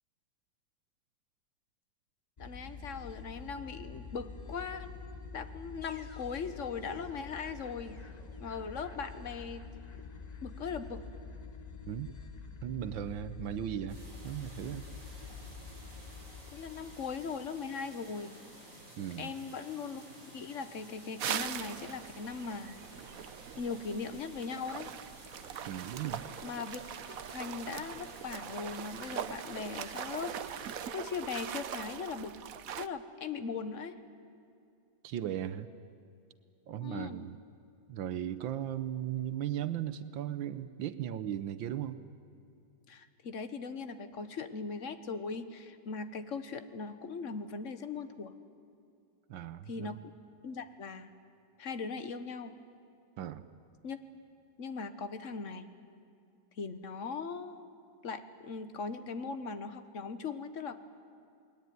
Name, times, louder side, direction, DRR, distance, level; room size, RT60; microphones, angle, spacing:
voice 1, 2.4-5.0 5.3-8.0 8.4-9.8 10.4-11.0 16.5-18.4 19.2-20.0 20.3-22.7 23.6-24.9 26.4-30.6 30.9-32.3 32.8-34.0 36.8-37.3 42.9-48.3 49.7-50.1 50.4-51.1 51.6-52.5 53.8-54.0 54.6-55.7 56.6-57.6 58.0-60.8, left 5 dB, 45° left, 10 dB, 1.5 m, -39 dB
sound 1, 2.4-17.7, left 5 dB, 25° left, 1.0 m, -47 dB
voice 2, 12.6-14.0 14.2-14.9 19.0-19.3 25.6-26.3 35.0-35.7 36.7-37.4 37.9-42.0 49.3-49.9 53.2-53.5, right 11 dB, 85° right, 12 dB, 1.6 m, -37 dB
sound 2, 13.9-30.8, right 1 dB, 40° right, 6.3 m, -53 dB
sound 3, 21.2-32.9, right 9 dB, 60° right, 1.1 m, -41 dB
29.0 x 20.5 x 9.4 m, 2.5 s
omnidirectional pair, 2.0 m